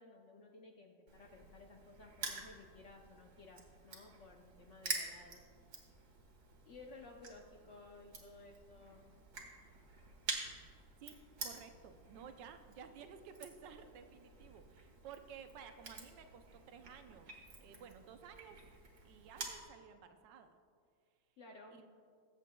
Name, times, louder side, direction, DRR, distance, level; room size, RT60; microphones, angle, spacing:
voice 1, 0.0-5.5 6.6-9.0 21.4-21.8, left 3 dB, 65° left, 1 dB, 0.7 m, -56 dB
Crushing, 1.1-19.6, right 3 dB, 60° right, 1.8 m, -48 dB
voice 2, 11.4-18.6 19.0-20.6 21.7-21.9, right 7 dB, 85° right, 7 dB, 1.4 m, -54 dB
21.5 x 7.6 x 2.2 m, 2.2 s
omnidirectional pair, 1.9 m